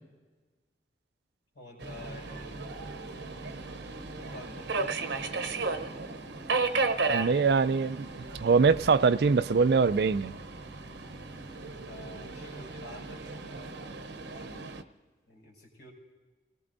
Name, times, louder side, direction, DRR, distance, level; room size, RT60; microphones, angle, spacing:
voice 1, 1.5-3.1 4.2-5.7 11.6-14.0 14.3-14.7 15.3-15.9, left 1 dB, 80° left, 5.3 m, -49 dB
Subway metro underground, 1.8-14.8, right 3 dB, 90° right, 0.9 m, -35 dB
voice 2, 7.1-8.1 8.4-10.3, right 5 dB, 65° right, 0.4 m, -23 dB
28.0 x 18.5 x 2.6 m
head